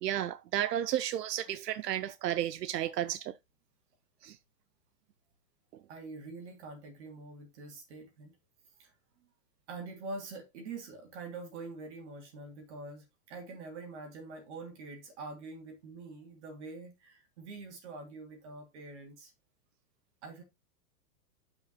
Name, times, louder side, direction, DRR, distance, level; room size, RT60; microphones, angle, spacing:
voice 1, 0.0-3.3 4.2-4.4, right 12 dB, 80° right, 0.8 m, -32 dB
voice 2, 5.9-8.3 8.8-8.9 9.7-19.3 20.2-20.4, right 3 dB, 45° right, 3.2 m, -45 dB
11.5 x 5.6 x 2.3 m
supercardioid pair, 180°, 48 cm